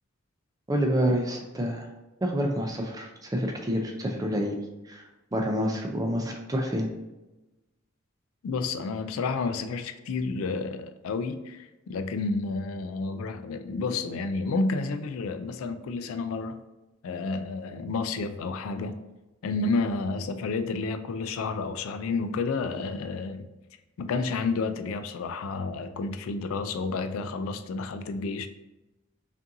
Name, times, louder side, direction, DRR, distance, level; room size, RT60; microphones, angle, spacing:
voice 1, 0.7-1.9 2.2-4.6 4.8-6.9, equal, 15° right, 2 dB, 0.5 m, -28 dB
voice 2, 8.4-16.6 17.0-19.0 19.4-23.5 24.0-28.5, left 3 dB, 80° left, 9 dB, 0.3 m, -30 dB
5.2 x 2.6 x 2.6 m, 1.0 s
head